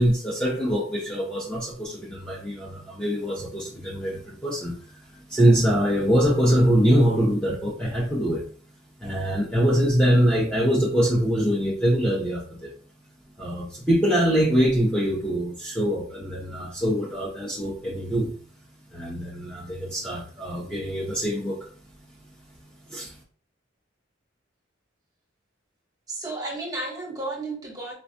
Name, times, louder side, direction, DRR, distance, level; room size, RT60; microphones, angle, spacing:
voice 1, 0.0-5.0 5.3-8.4 9.0-12.7 13.4-18.3 18.9-21.7 22.9-23.1, equal, 5° left, -5 dB, 0.7 m, -23 dB
voice 2, 26.1-27.9, right 2 dB, 20° right, -2 dB, 1.0 m, -32 dB
4.2 x 2.2 x 2.5 m, 0.43 s
head